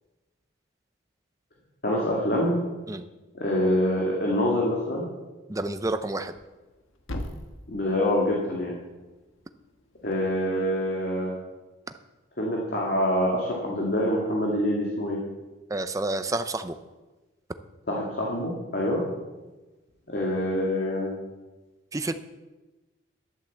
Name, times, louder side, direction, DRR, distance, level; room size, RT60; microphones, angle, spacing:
voice 1, 1.8-2.6 3.3-5.1 7.7-8.7 10.0-11.3 12.4-15.2 17.9-19.0 20.1-21.1, left 1 dB, 50° left, -3 dB, 2.1 m, -25 dB
voice 2, 5.5-6.3 15.7-16.8 21.9-22.1, right 2 dB, 15° right, 10 dB, 0.6 m, -29 dB
Thump thud, 6.2-10.3, left 1 dB, 85° left, 1.4 m, -42 dB
11.5 x 7.8 x 7.4 m, 1.2 s
head